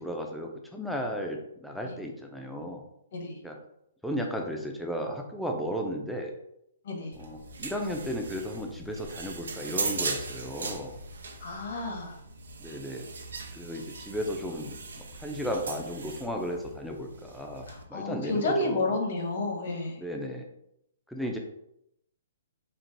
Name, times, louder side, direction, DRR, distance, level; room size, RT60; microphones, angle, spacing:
voice 1, 0.0-2.8 3.4-3.6 4.0-6.3 7.2-11.0 12.6-13.0 13.5-14.7 15.2-18.9 20.0-20.5 21.1-21.4, equal, ahead, 1 dB, 0.5 m, -34 dB
sound 1, 7.1-17.8, right 4 dB, 80° right, 0.6 m, -39 dB
voice 2, 11.4-12.2 17.7-20.0, left 2 dB, 60° left, 2 dB, 1.1 m, -31 dB
4.5 x 2.0 x 3.9 m, 0.78 s
hypercardioid pair, 145°, 0 cm